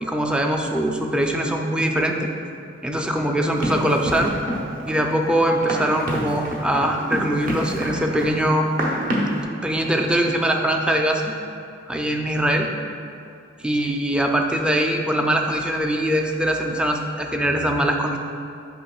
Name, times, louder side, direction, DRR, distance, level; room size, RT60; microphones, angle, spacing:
voice 1, 0.0-2.3 2.8-4.3 4.9-8.7 9.6-11.3 11.9-12.7 13.6-18.2, right 1 dB, 5° right, 2 dB, 0.4 m, -22 dB
Run, 3.6-9.4, right 1 dB, 45° right, 1.0 m, -28 dB
8.9 x 5.9 x 2.3 m, 2.5 s
head